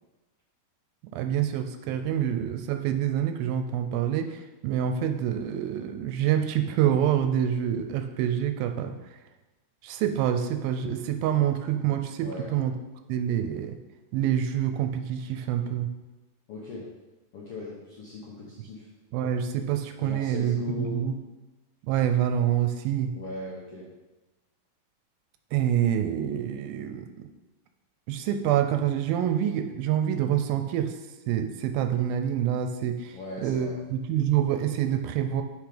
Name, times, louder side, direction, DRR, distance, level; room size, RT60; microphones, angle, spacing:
voice 1, 1.1-4.4 4.6-9.0 9.8-12.7 13.1-13.8 14.1-15.9 19.1-21.2 21.9-23.1 25.5-27.3 28.1-30.9 31.3-35.4, right 10 dB, 80° right, 7 dB, 2.3 m, -26 dB
voice 2, 12.2-12.5 16.5-16.8 17.3-18.9 20.0-21.1 23.1-23.9 33.1-33.8, left 2 dB, 70° left, -5 dB, 1.4 m, -38 dB
6.9 x 5.7 x 5.0 m, 1.1 s
omnidirectional pair, 4.3 m